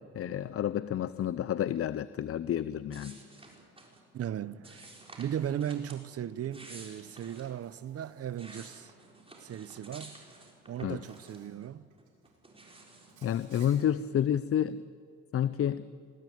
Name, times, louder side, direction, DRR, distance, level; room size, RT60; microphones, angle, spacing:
voice 1, 0.1-3.2 10.8-11.0 13.2-14.8 15.3-15.8, left 10 dB, 50° left, 0.6 m, -30 dB
sound 1, 2.9-4.0 4.6-6.0 6.4-7.5 8.1-11.7 12.0-13.7, right 2 dB, 20° right, 4.1 m, -52 dB
voice 2, 4.1-4.9 5.2-8.9 9.4-10.2 10.7-11.8, right 10 dB, 50° right, 0.7 m, -37 dB
Insect, 5.4-5.6 6.5-9.1 10.2-10.4 11.0-11.6 11.9-12.4 13.1-13.8, right 5 dB, 80° right, 7.1 m, -61 dB
21.0 x 15.5 x 9.3 m
cardioid pair, 90°, 30 cm